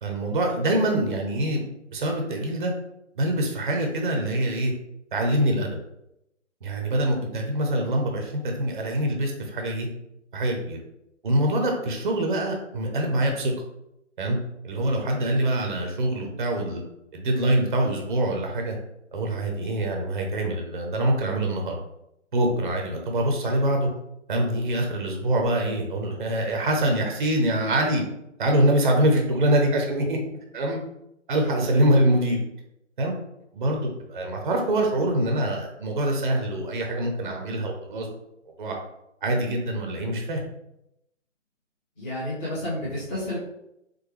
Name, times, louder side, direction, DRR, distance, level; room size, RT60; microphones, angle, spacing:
voice 1, 0.0-1.6 1.9-2.7 3.2-4.7 5.1-5.7 6.6-9.9 10.3-10.8 11.2-13.5 14.2-14.4 14.6-16.8 17.1-18.8 19.1-21.8 22.3-23.9 24.3-28.0 28.4-30.2 30.5-30.8 31.3-32.4 33.0-33.1 33.5-38.1 38.6-38.7 39.2-40.4, right 1 dB, 40° right, 2 dB, 0.7 m, -24 dB
voice 2, 42.0-43.4, left 1 dB, 10° left, -9 dB, 0.8 m, -30 dB
4.3 x 2.2 x 3.1 m, 0.83 s
figure-of-eight pair, 140°, 38 cm